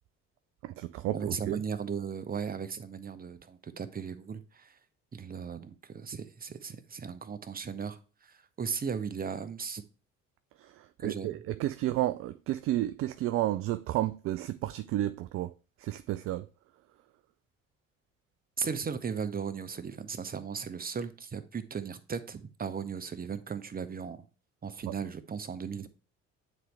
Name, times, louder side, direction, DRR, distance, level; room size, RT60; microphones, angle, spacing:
voice 1, 0.6-1.6 10.6-15.5 15.8-16.4, right 14 dB, 40° right, 0.4 m, -32 dB
voice 2, 1.1-4.7 5.1-8.0 8.6-9.8 11.0-11.4 18.6-24.2 24.6-25.9, right 6 dB, 25° right, 0.9 m, -36 dB
9.3 x 4.3 x 3.3 m
figure-of-eight pair, 50°, 38 cm